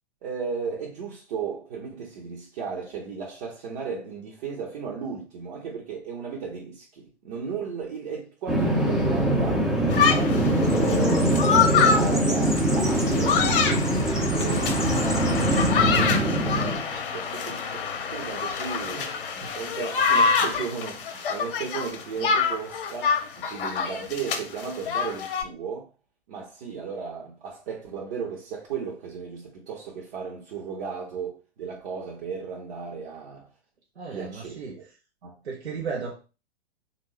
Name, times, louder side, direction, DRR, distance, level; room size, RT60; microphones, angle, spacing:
voice 1, 0.2-10.4 10.7-13.5 14.1-17.9 18.1-19.1 19.4-25.9 26.3-33.5 34.1-34.6 35.2-35.4, right 6 dB, 45° right, 0.9 m, -35 dB
Bird vocalization bird call bird song, 8.5-16.8, right 1 dB, ahead, 0.6 m, -23 dB
sound 1, 9.9-25.4, left 6 dB, 55° left, 0.8 m, -26 dB
voice 2, 34.0-34.8 35.4-36.2, right 5 dB, 70° right, 0.8 m, -34 dB
3.6 x 2.5 x 3.2 m
figure-of-eight pair, 105°, 33 cm